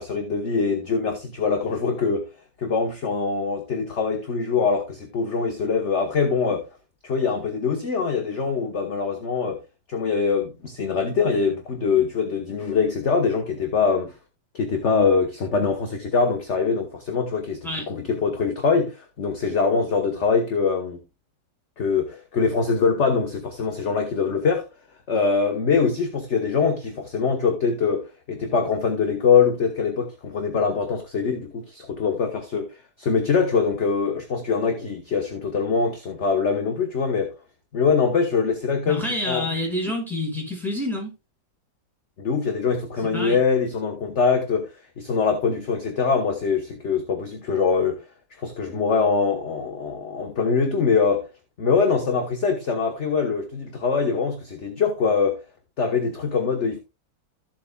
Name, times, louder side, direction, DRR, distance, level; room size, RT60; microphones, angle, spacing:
voice 1, 0.0-2.3 2.6-6.6 7.0-9.6 9.9-14.1 14.5-21.0 21.8-24.7 25.1-37.3 37.7-39.4 42.2-44.7 45.0-48.0 48.4-51.3 51.6-55.4 55.8-56.8, left 5 dB, 40° left, 1.2 m, -23 dB
voice 2, 38.9-41.1 43.1-43.4, left 1 dB, ahead, 5.8 m, -28 dB
14.5 x 7.4 x 2.3 m
omnidirectional pair, 2.1 m